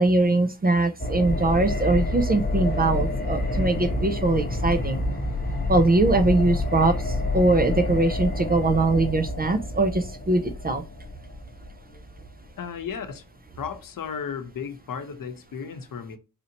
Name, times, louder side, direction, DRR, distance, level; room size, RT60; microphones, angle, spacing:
voice 1, 0.0-5.0 5.7-10.8, right 2 dB, 25° right, 0.4 m, -22 dB
sound 1, 1.0-12.8 13.1-13.2, left 2 dB, 25° left, 1.0 m, -28 dB
voice 2, 12.6-13.2 13.6-16.2, left 6 dB, 70° left, 0.8 m, -34 dB
4.3 x 2.7 x 2.8 m
wide cardioid pair, 160°, 35 cm